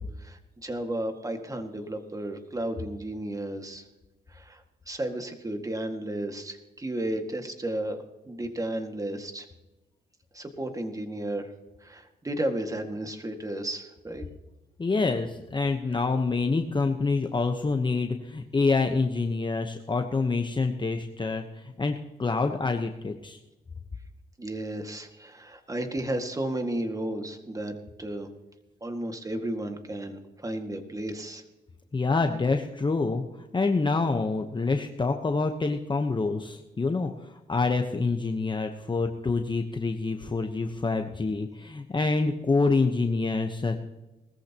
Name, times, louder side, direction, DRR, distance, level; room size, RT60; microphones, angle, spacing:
voice 1, 0.2-3.8 4.3-4.6 4.9-8.0 8.3-9.5 10.3-11.5 11.8-14.3 24.4-28.3 28.8-31.4, right 1 dB, 20° right, 6 dB, 2.0 m, -33 dB
voice 2, 14.8-23.4 31.9-43.8, left 3 dB, 25° left, 5 dB, 1.0 m, -27 dB
19.5 x 14.0 x 3.0 m, 1.0 s
cardioid pair, 85°, 17 cm